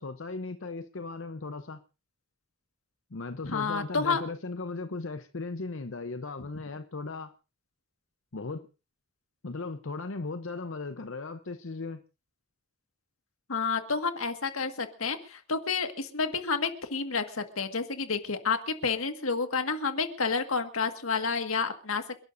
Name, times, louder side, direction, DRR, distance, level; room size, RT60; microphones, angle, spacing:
voice 1, 0.0-1.8 3.1-7.3 8.3-8.7 9.4-12.0, left 3 dB, 65° left, 0.8 m, -37 dB
voice 2, 3.4-4.2 13.5-22.2, left 4 dB, 80° left, 1.8 m, -30 dB
29.0 x 12.0 x 2.7 m
head